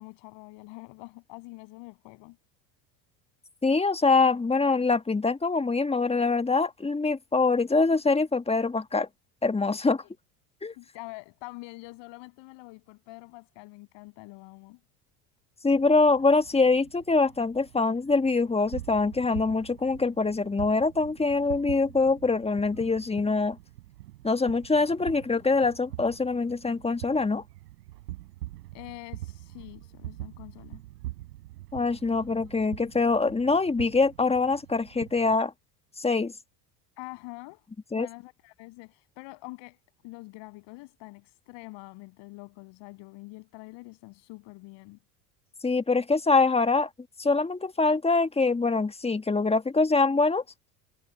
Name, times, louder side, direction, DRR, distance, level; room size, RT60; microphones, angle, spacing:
voice 1, 0.0-2.4 10.0-10.1 10.8-14.8 28.7-30.8 37.0-37.6 37.9-45.0, left 24 dB, 60° left, 7.5 m, -45 dB
voice 2, 3.6-9.1 9.4-10.0 10.6-10.7 15.6-23.6 24.2-27.4 31.7-35.5 36.0-36.3 37.9-38.1 45.6-46.9 47.2-50.4, left 3 dB, 10° left, 1.5 m, -24 dB
sound 1, 15.7-35.4, right 16 dB, 75° right, 6.3 m, -44 dB
hypercardioid pair, 75°, 48 cm